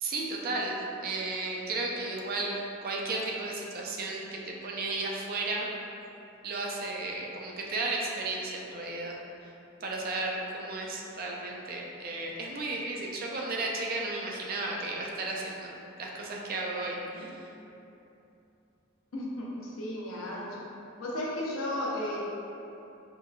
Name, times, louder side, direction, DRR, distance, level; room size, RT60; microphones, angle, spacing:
voice 1, 0.0-5.7 6.4-9.2 9.8-17.3, right 2 dB, 45° right, -2 dB, 0.4 m, -34 dB
voice 2, 19.1-20.5 21.0-22.2, left 1 dB, 75° left, -5 dB, 0.7 m, -34 dB
4.3 x 2.3 x 2.4 m, 2.8 s
head